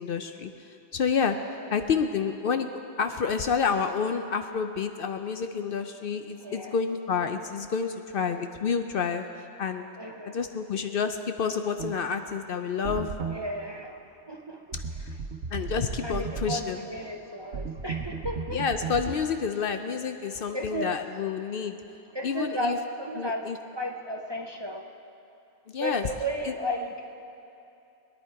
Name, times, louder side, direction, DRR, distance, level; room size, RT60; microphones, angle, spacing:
voice 1, 0.0-1.4 1.7-2.7 3.0-9.9 10.3-13.1 14.7-15.1 15.5-16.8 18.5-21.8 22.2-22.8 23.2-23.6 25.7-26.0, left 6 dB, 60° left, 7 dB, 0.7 m, -29 dB
voice 2, 6.4-6.8 10.0-10.4 13.2-14.6 16.0-18.6 20.5-21.0 22.1-24.9 25.8-27.0, equal, 25° right, 2 dB, 0.7 m, -34 dB
sound 1, 11.8-12.0 12.8-13.4 14.7-16.6 17.5-19.1, right 5 dB, 75° right, 1.2 m, -34 dB
21.0 x 10.0 x 4.6 m, 2.7 s
omnidirectional pair, 1.2 m